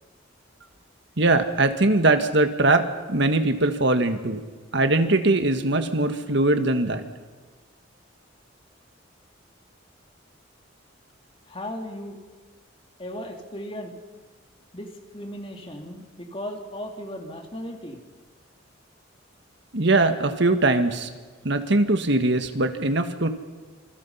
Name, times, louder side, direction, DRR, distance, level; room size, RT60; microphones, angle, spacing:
voice 1, 1.2-4.4 4.7-7.0 19.7-21.1 21.4-23.3, right 2 dB, 60° right, 7 dB, 1.7 m, -21 dB
voice 2, 11.5-12.2 13.0-13.9 14.7-18.0, equal, 25° left, 3 dB, 3.0 m, -36 dB
27.5 x 27.0 x 5.7 m, 1.4 s
head